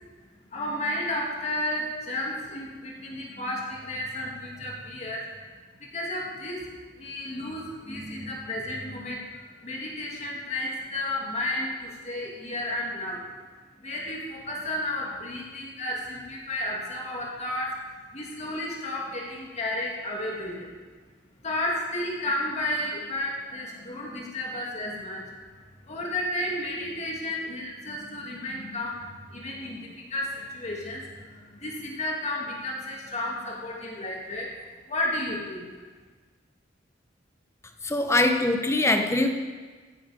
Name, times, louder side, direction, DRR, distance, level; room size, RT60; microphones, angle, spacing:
voice 1, 0.5-5.2 5.8-6.6 7.0-13.3 13.8-17.8 18.1-20.7 21.4-34.5 34.9-35.7, left 1 dB, 35° left, -2 dB, 2.2 m, -32 dB
voice 2, 37.8-39.3, left 2 dB, 15° left, 5 dB, 0.9 m, -22 dB
15.0 x 10.5 x 4.9 m, 1.4 s
head